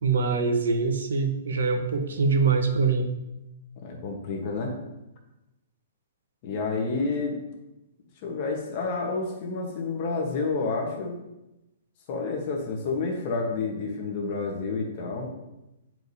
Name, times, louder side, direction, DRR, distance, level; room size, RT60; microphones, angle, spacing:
voice 1, 0.0-3.1, right 4 dB, 85° right, 5 dB, 1.0 m, -24 dB
voice 2, 3.8-4.7 6.4-7.4 8.2-11.1 12.1-15.3, left 3 dB, 30° left, 1 dB, 1.1 m, -29 dB
9.7 x 4.6 x 2.7 m, 0.96 s
hypercardioid pair, 180°, 0 cm